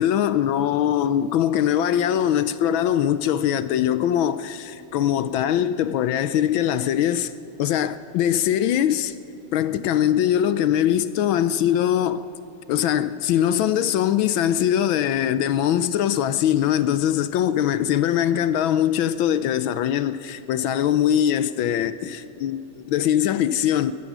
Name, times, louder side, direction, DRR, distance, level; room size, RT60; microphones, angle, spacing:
voice 1, 0.0-7.3 7.6-9.1 9.5-12.2 12.7-23.9, left 10 dB, 75° left, 1.3 m, -22 dB
21.0 x 20.5 x 6.1 m
omnidirectional pair, 2.4 m